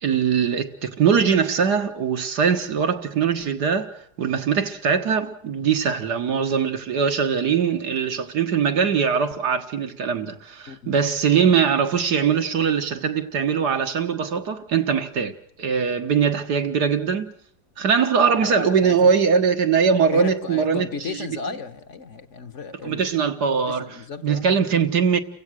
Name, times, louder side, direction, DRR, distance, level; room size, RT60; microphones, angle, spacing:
voice 1, 0.0-17.3 17.8-21.3 22.8-24.0 24.2-25.2, right 6 dB, 80° right, 2.1 m, -21 dB
voice 2, 18.3-19.1 20.1-23.0 23.5-24.5, left 5 dB, 50° left, 1.3 m, -34 dB
30.0 x 16.5 x 6.3 m
omnidirectional pair, 1.7 m